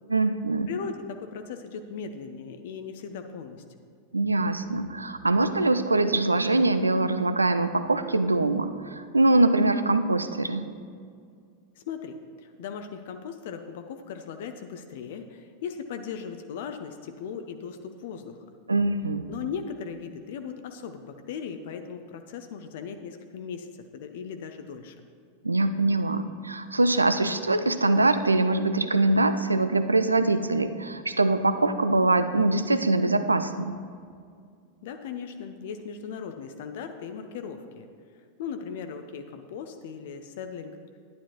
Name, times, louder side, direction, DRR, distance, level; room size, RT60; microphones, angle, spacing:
voice 1, 0.1-0.7 4.1-10.8 18.7-19.2 25.4-33.8, right 2 dB, 80° right, 11 dB, 0.4 m, -23 dB
voice 2, 0.7-3.6 11.8-18.4 19.3-23.7 23.9-25.0 34.8-37.9 38.4-41.0, left 6 dB, 55° left, 7 dB, 0.5 m, -38 dB
11.0 x 9.8 x 3.0 m, 2.2 s
figure-of-eight pair, 90°, 0 cm